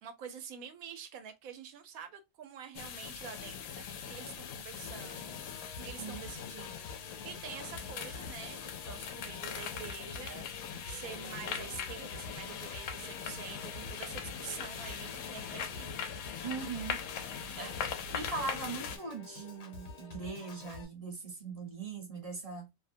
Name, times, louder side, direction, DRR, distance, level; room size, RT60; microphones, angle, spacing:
voice 1, 0.0-15.9, right 8 dB, 85° right, 1.1 m, -47 dB
sound 1, 2.7-19.0, left 7 dB, 80° left, 1.0 m, -41 dB
Piano / Organ, 4.9-20.9, left 4 dB, 55° left, 1.0 m, -49 dB
voice 2, 16.4-17.0 17.6-22.7, right 4 dB, 35° right, 0.7 m, -40 dB
2.7 x 2.1 x 2.5 m
omnidirectional pair, 1.4 m